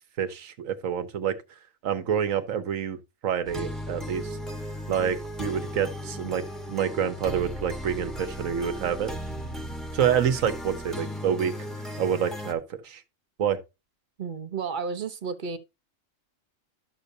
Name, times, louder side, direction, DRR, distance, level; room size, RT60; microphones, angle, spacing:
voice 1, 0.2-1.4 1.8-3.0 3.2-4.4 4.9-6.4 6.7-9.1 9.9-11.5 12.0-13.0 13.4-13.6, right 8 dB, 75° right, 1.3 m, -27 dB
sound 1, 3.5-12.5, equal, ahead, 1.1 m, -36 dB
voice 2, 14.2-15.6, right 5 dB, 45° right, 0.8 m, -32 dB
12.0 x 6.6 x 2.7 m
omnidirectional pair, 1.4 m